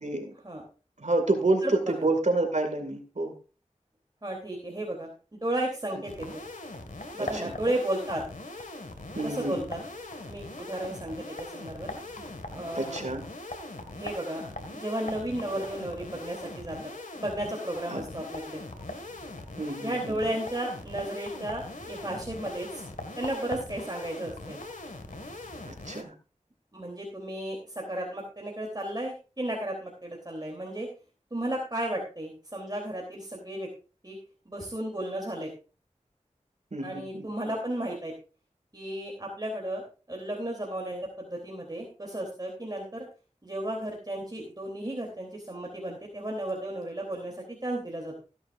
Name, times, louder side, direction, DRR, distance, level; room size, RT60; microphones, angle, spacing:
voice 1, 0.0-0.3 1.0-3.3 7.3-7.5 9.2-9.6 12.8-13.2 17.9-18.0 19.6-20.2 25.6-26.1 36.7-37.3, right 2 dB, 65° right, 5 dB, 2.3 m, -28 dB
voice 2, 1.6-2.1 4.2-5.1 5.4-6.4 7.1-8.2 9.2-9.8 10.3-11.9 12.5-13.1 13.9-16.8 17.1-18.6 19.8-22.8 23.2-24.6 26.7-30.9 31.3-33.7 34.0-34.2 34.4-35.5 36.8-38.1 38.7-43.0 43.4-48.1, right 1 dB, 30° right, 0 dB, 3.3 m, -34 dB
sound 1, 6.1-26.0, left 2 dB, 85° left, 1.9 m, -41 dB
16.0 x 10.5 x 2.6 m, 0.34 s
wide cardioid pair, 45°, 13 cm